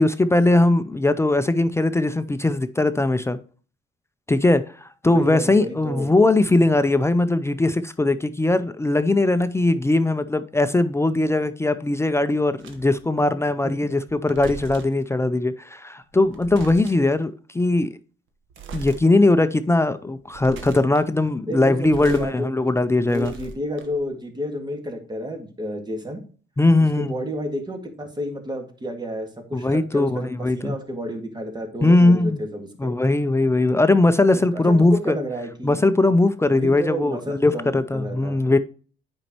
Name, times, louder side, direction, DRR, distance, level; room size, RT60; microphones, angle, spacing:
voice 1, 0.0-3.4 4.3-18.0 18.7-23.3 26.6-27.1 29.5-30.7 31.8-32.4 32.8-35.2 35.6-38.6, left 2 dB, 15° left, 0.5 m, -20 dB
voice 2, 5.1-6.1 13.6-13.7 21.5-22.5 23.1-26.2 27.0-33.0 34.3-35.8 36.5-38.4, equal, 20° right, 1.9 m, -31 dB
sound 1, 12.6-13.0 14.1-15.0 16.1-17.1 18.5-19.0 19.5-19.6 20.2-21.0 21.7-22.3 22.7-24.1, right 5 dB, 80° right, 1.2 m, -39 dB
8.8 x 5.3 x 3.0 m
cardioid pair, 90°, 20 cm